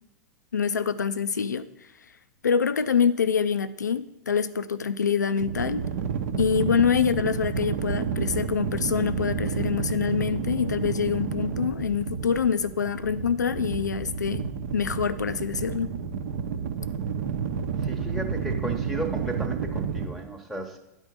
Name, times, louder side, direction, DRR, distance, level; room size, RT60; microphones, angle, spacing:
voice 1, 0.5-1.9 2.4-5.8 6.4-14.4 14.7-15.9, left 6 dB, 85° left, 14 dB, 0.4 m, -25 dB
sound 1, 5.4-20.1, right 6 dB, 60° right, 0.8 m, -30 dB
voice 2, 17.8-20.8, right 2 dB, ahead, 4 dB, 0.9 m, -34 dB
10.5 x 4.5 x 6.0 m, 0.90 s
figure-of-eight pair, 95°, 9 cm